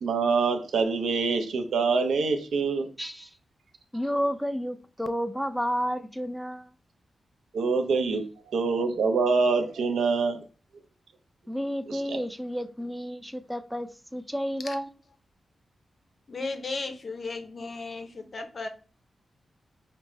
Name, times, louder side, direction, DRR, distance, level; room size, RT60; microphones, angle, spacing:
voice 1, 0.0-2.9 7.5-8.2 8.5-10.4 11.9-12.2, right 4 dB, 90° right, 0.6 m, -25 dB
voice 2, 3.0-3.3 3.9-6.7 11.5-14.9, equal, 5° right, 0.5 m, -31 dB
voice 3, 16.3-18.7, left 3 dB, 55° left, 0.7 m, -35 dB
4.9 x 2.1 x 3.1 m
cardioid pair, 65°, 0 cm